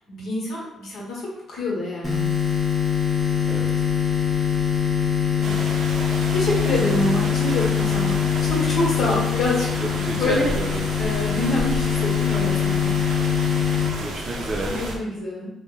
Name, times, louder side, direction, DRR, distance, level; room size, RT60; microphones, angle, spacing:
voice 1, 0.1-1.2 1.5-2.2 5.4-5.7 6.3-10.5 11.0-12.9 14.6-15.5, left 1 dB, 70° left, -4 dB, 1.1 m, -26 dB
sound 1, 2.0-15.0, left 8 dB, 30° left, 0.7 m, -23 dB
sound 2, 5.4-15.0, right 2 dB, 75° right, 0.6 m, -33 dB
voice 2, 9.8-10.9 14.0-14.7, right 1 dB, 30° right, 0 dB, 0.5 m, -29 dB
2.6 x 2.1 x 3.8 m, 0.90 s
cardioid pair, 90°, 0 cm